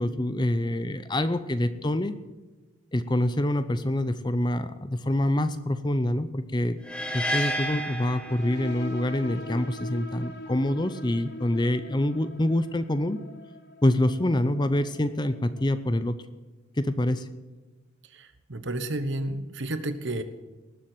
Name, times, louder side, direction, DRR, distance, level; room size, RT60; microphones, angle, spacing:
voice 1, 0.0-2.2 2.9-6.8 7.1-13.2 13.8-16.2 16.8-17.3, left 1 dB, 20° left, 12 dB, 0.6 m, -26 dB
sound 1, 6.8-9.0, equal, 5° left, 1.2 m, -31 dB
sound 2, 8.3-15.6, left 2 dB, 50° left, 1.6 m, -42 dB
voice 2, 18.1-20.2, right 1 dB, 55° right, 10 dB, 1.1 m, -31 dB
19.0 x 7.5 x 7.8 m, 1.2 s
head